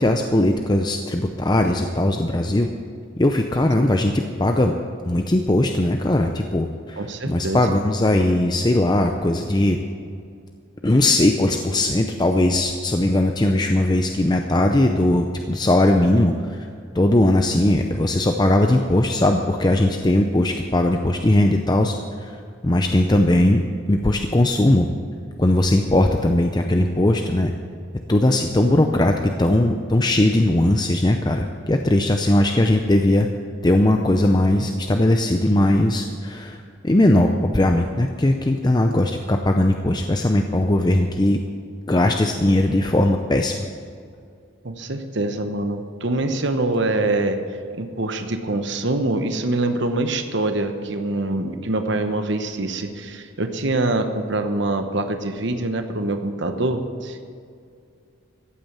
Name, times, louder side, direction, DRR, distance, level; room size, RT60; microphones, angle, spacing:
voice 1, 0.0-2.7 3.2-4.8 5.1-9.8 10.8-16.7 16.9-21.9 22.2-22.3 22.6-24.9 25.4-27.5 28.1-33.3 33.6-41.4 41.9-43.5, left 1 dB, 20° left, 4 dB, 0.6 m, -19 dB
voice 2, 7.0-7.7 28.6-29.1 44.6-47.4 47.7-57.2, right 2 dB, 55° right, 7 dB, 1.1 m, -24 dB
14.5 x 8.6 x 7.4 m, 2.3 s
head